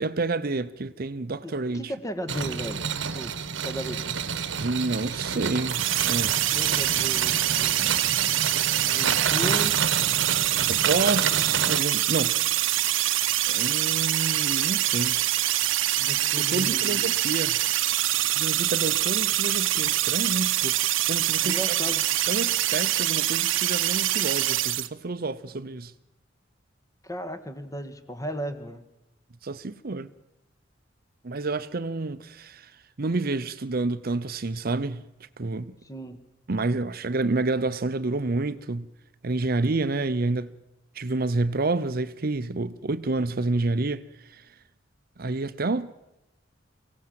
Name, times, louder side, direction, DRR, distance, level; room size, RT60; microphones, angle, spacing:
voice 1, 0.0-1.9 4.6-6.4 10.7-12.8 13.5-15.2 16.4-17.6 18.4-21.6 22.3-25.9 29.4-30.1 31.2-32.7 33.0-35.0 35.4-35.7 36.5-38.9 39.2-40.5 40.9-44.4 45.2-45.9, right 3 dB, 50° right, 0.7 m, -29 dB
voice 2, 1.4-2.8 3.1-3.3 3.6-4.1 6.5-7.8 8.8-9.7 16.0-17.1 21.4-22.0 27.0-28.8 35.8-36.2, equal, 15° left, 1.7 m, -35 dB
sound 1, 2.3-11.8, right 6 dB, 70° right, 1.1 m, -29 dB
sound 2, 5.7-24.9, right 14 dB, 85° right, 0.8 m, -25 dB
24.0 x 17.5 x 7.7 m
head